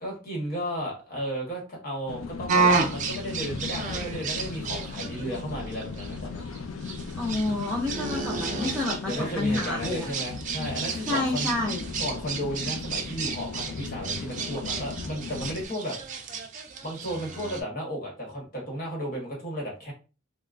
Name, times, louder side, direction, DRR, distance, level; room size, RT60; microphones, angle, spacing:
voice 1, 0.0-6.5 9.0-11.5 12.0-16.0 16.8-19.9, equal, 45° left, -2 dB, 1.2 m, -34 dB
sound 1, 2.1-15.6, left 5 dB, 85° left, 0.4 m, -37 dB
sound 2, 2.5-17.6, right 4 dB, 40° right, 0.5 m, -31 dB
voice 2, 7.2-10.1 11.1-11.8, left 2 dB, 5° left, -5 dB, 0.6 m, -29 dB
3.6 x 2.1 x 2.4 m, 0.32 s
head